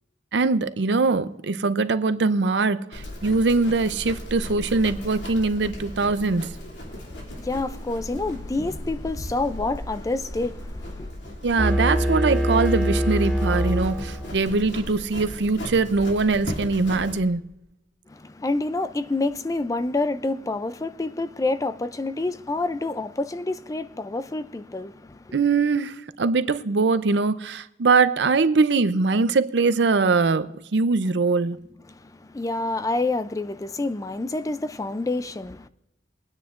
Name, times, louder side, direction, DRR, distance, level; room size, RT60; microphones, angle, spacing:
voice 1, 0.3-6.6 11.4-17.4 25.3-31.7, right 4 dB, 75° right, 0.6 m, -22 dB
Livestock farm animals working animals, 2.9-17.2, left 1 dB, 90° left, 2.6 m, -36 dB
voice 2, 6.9-11.1 18.1-25.4 31.9-35.7, left 2 dB, 20° left, 0.4 m, -28 dB
sound 1, 11.6-14.5, equal, ahead, 2.3 m, -24 dB
22.0 x 9.6 x 2.5 m
head